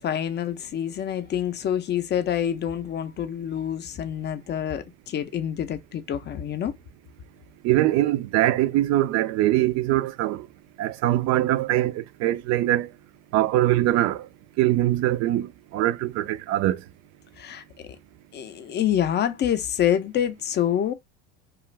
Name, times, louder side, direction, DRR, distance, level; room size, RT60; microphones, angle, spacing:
voice 1, 0.0-6.7 17.4-18.0 18.3-20.9, left 10 dB, 30° left, 0.5 m, -27 dB
voice 2, 7.6-10.5 10.8-12.9 13.3-14.3 14.6-16.8, right 14 dB, 45° right, 0.4 m, -22 dB
2.4 x 2.4 x 3.1 m
hypercardioid pair, 90°, 38 cm